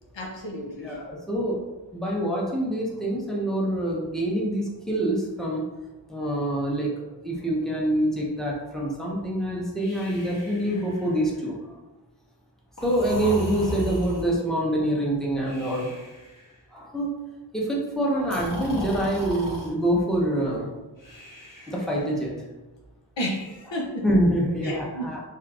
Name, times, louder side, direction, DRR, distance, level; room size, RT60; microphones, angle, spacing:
voice 1, 0.1-1.0 23.2-24.1 24.6-25.1, equal, 75° left, 1 dB, 0.7 m, -32 dB
voice 2, 0.8-1.6 1.9-5.7 6.1-11.8 12.8-16.0 16.7-17.2 17.5-20.7 21.7-22.3 24.0-25.2, right 1 dB, ahead, -4 dB, 1.1 m, -26 dB
Breathing, 9.8-11.4 12.8-14.4 15.5-16.4 18.2-19.7 21.0-22.2, left 1 dB, 45° left, 1.1 m, -36 dB
4.3 x 3.5 x 2.5 m, 1.1 s
wide cardioid pair, 40°, 45 cm